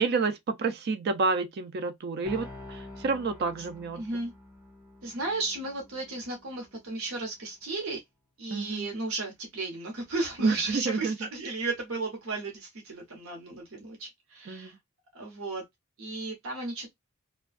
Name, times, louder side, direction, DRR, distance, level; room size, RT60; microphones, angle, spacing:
voice 1, 0.0-4.0 8.5-8.9 10.4-11.2 14.5-14.8, right 4 dB, 50° right, 0.4 m, -29 dB
sound 1, 2.2-7.2, left 2 dB, 10° right, 0.9 m, -47 dB
voice 2, 4.0-4.3 5.0-8.0 8.4-14.7 15.1-15.6 16.0-16.9, right 3 dB, 75° right, 0.9 m, -34 dB
2.5 x 2.2 x 2.3 m
head